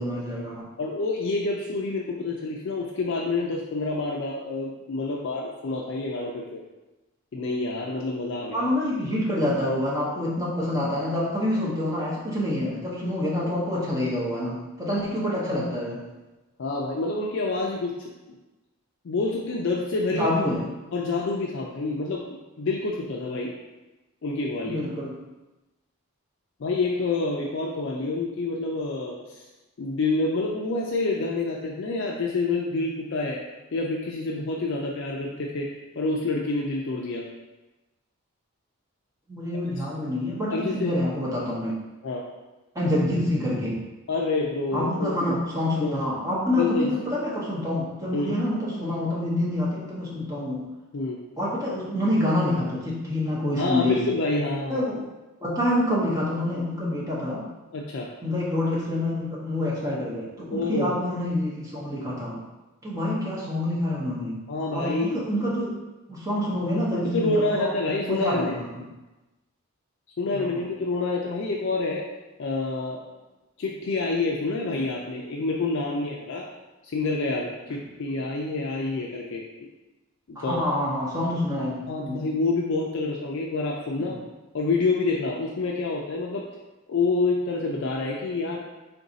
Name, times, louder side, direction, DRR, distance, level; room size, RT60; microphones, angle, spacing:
voice 1, 0.0-0.7 8.5-16.0 20.1-20.7 24.6-25.1 39.3-41.8 42.7-43.8 44.7-50.7 51.4-54.0 54.7-55.0 55.4-57.4 58.2-62.4 62.8-64.4 64.7-65.7 66.1-68.8 70.3-70.6 80.4-82.2 84.1-84.2, left 1 dB, 15° right, -6 dB, 0.8 m, -27 dB
voice 2, 0.8-6.6 7.3-8.6 16.6-18.1 19.0-20.3 20.9-23.5 24.2-24.8 26.6-29.4 29.8-33.4 33.7-37.3 40.5-40.9 42.0-42.2 44.1-45.3 45.8-46.0 46.6-46.9 48.1-48.4 50.9-51.2 53.6-54.9 57.7-58.1 60.5-61.0 64.5-65.3 67.1-68.6 70.2-72.0 72.4-73.0 73.6-76.5 76.8-79.4 80.3-80.6 81.9-84.2 84.5-86.5 86.9-88.6, left 3 dB, 55° left, -2 dB, 0.4 m, -27 dB
3.9 x 2.5 x 3.9 m, 1.1 s
head